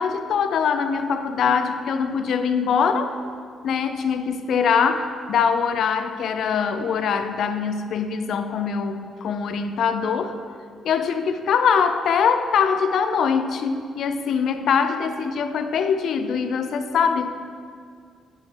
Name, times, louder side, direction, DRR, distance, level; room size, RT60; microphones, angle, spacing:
voice 1, 0.0-3.2 3.6-10.4 10.8-17.3, left 6 dB, 70° left, 9 dB, 0.5 m, -23 dB
7.8 x 4.3 x 5.8 m, 2.1 s
cardioid pair, 90°, 0 cm